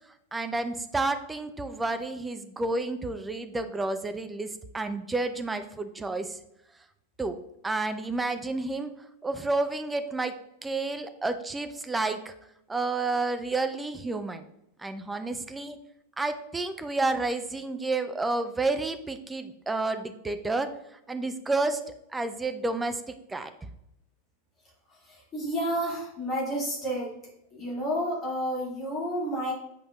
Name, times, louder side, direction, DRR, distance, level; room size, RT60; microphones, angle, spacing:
voice 1, 0.3-6.4 7.2-7.4 7.6-8.9 9.2-10.4 10.6-12.3 12.7-14.5 14.8-15.8 16.2-20.7 21.1-21.8 22.1-23.0 23.3-23.5, right 3 dB, 10° right, 9 dB, 0.5 m, -30 dB
voice 2, 25.3-27.1 27.5-29.5, equal, 25° left, -3 dB, 2.2 m, -30 dB
8.3 x 5.0 x 2.4 m, 0.82 s
figure-of-eight pair, 90°, 0 cm